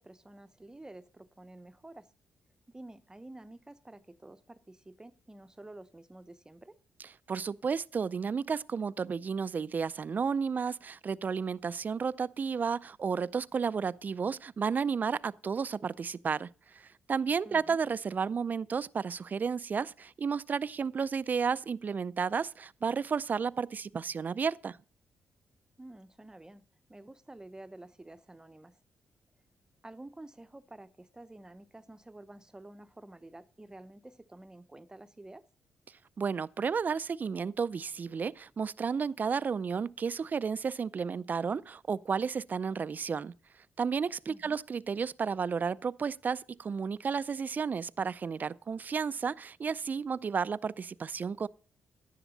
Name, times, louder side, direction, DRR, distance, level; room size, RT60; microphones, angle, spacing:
voice 1, 0.0-2.1 2.7-6.8 17.4-17.8 25.8-26.6 26.9-28.8 29.8-35.5 44.3-44.6, right 1 dB, 15° right, 0.8 m, -50 dB
voice 2, 7.3-24.8 36.2-43.3 43.8-51.5, right 6 dB, 45° right, 0.4 m, -32 dB
11.0 x 10.0 x 4.0 m
supercardioid pair, 60°, 4 cm